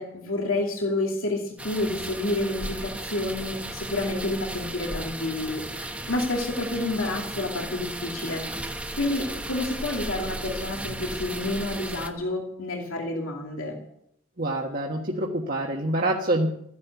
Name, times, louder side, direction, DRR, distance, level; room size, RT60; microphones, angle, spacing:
voice 1, 0.0-13.8, left 2 dB, 85° left, 0 dB, 2.6 m, -29 dB
sound 1, 1.6-12.1, right 1 dB, 5° right, 1.1 m, -35 dB
voice 2, 14.4-16.5, right 1 dB, 45° right, -1 dB, 1.5 m, -26 dB
15.0 x 11.0 x 8.2 m, 0.74 s
head